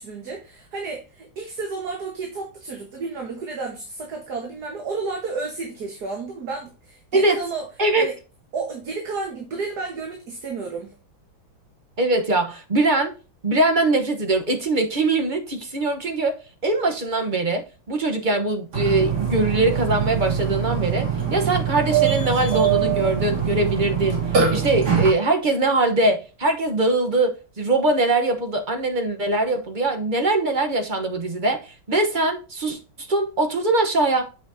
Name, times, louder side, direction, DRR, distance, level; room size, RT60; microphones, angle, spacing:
voice 1, 0.0-7.7 8.0-8.1 8.5-10.9, right 4 dB, 55° right, 1.9 m, -31 dB
voice 2, 12.0-13.1 13.4-16.4 16.6-34.2, right 2 dB, 35° right, 0.9 m, -22 dB
Burping eructation, 18.7-25.1, right 7 dB, 85° right, 3.5 m, -23 dB
8.3 x 5.9 x 2.7 m
omnidirectional pair, 2.2 m